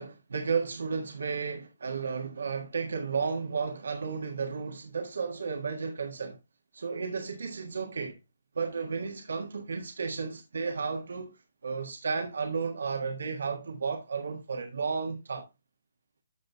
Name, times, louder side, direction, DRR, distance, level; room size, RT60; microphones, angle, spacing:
voice 1, 0.0-6.4 6.7-8.2 8.5-11.3 11.6-15.4, right 5 dB, 65° right, 1.5 m, -33 dB
14.0 x 5.2 x 2.2 m
figure-of-eight pair, 145°, 0 cm